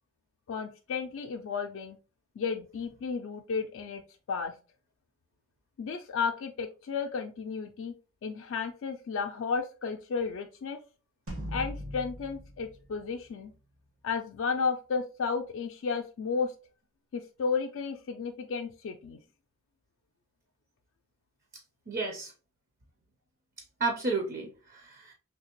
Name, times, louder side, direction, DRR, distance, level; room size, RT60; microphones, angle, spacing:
voice 1, 0.5-2.0 2.4-4.0 4.3-4.5 5.8-7.9 8.2-10.8 11.5-13.5 14.0-16.5 17.1-19.2, left 5 dB, 65° left, 2 dB, 0.3 m, -33 dB
sound 1, 11.3-13.8, equal, 85° right, 1.4 m, -40 dB
voice 2, 21.9-22.3 23.8-25.1, right 3 dB, 45° right, 2 dB, 0.5 m, -32 dB
3.3 x 2.8 x 2.9 m, 0.35 s
head